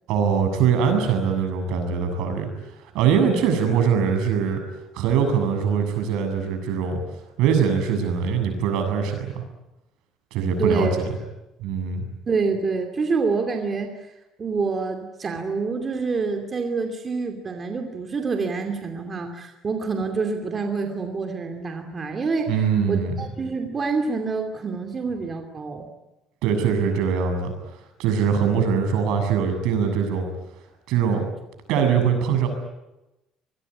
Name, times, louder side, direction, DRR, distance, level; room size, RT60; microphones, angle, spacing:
voice 1, 0.1-2.5 2.8-4.6 4.9-7.0 7.4-9.4 10.3-10.9 11.6-12.1 22.5-23.2 26.4-27.5 28.0-30.3 30.9-31.2 31.7-32.5, right 7 dB, 80° right, 6 dB, 7.3 m, -22 dB
voice 2, 10.6-11.0 12.3-14.0 14.4-22.5 22.9-25.9 28.3-28.7, right 4 dB, 25° right, 4 dB, 2.6 m, -27 dB
26.5 x 21.0 x 9.7 m, 0.97 s
cardioid pair, 165°, 0 cm